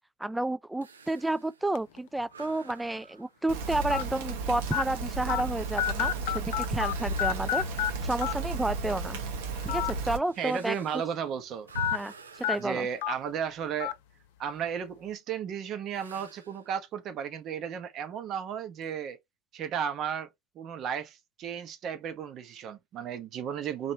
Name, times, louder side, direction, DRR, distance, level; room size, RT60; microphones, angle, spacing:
voice 1, 0.2-7.6 8.0-9.2 9.6-10.8 11.9-12.9, right 2 dB, 5° right, 0.3 m, -31 dB
sound 1, 0.8-8.0 8.4-8.5 9.3-13.9 15.9-16.7, right 4 dB, 80° right, 0.5 m, -48 dB
sound 2, 1.8-2.0 2.7-2.8 3.9-4.0 4.7-4.8 5.3-5.4 5.8-6.9 7.2-7.9 8.2-8.3 9.6-9.9 10.3-10.4 11.8-12.0 12.4-12.6 13.0-13.1 13.8-13.9, left 12 dB, 60° left, 0.5 m, -29 dB
Rain, 3.5-10.2, right 3 dB, 65° right, 1.1 m, -34 dB
voice 2, 10.4-11.7 12.6-14.0 14.4-19.2 19.5-20.3 20.5-23.9, right 8 dB, 45° right, 0.9 m, -34 dB
4.2 x 3.0 x 2.8 m
figure-of-eight pair, 75°, 0 cm